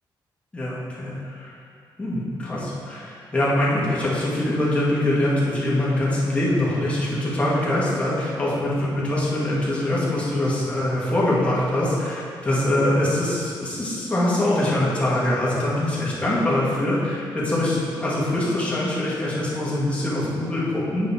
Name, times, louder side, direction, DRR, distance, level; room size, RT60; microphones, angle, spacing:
voice 1, 0.5-1.5 2.0-21.1, left 1 dB, 15° left, -8 dB, 2.0 m, -23 dB
8.4 x 5.3 x 4.3 m, 2.3 s
wide cardioid pair, 130°, 8 cm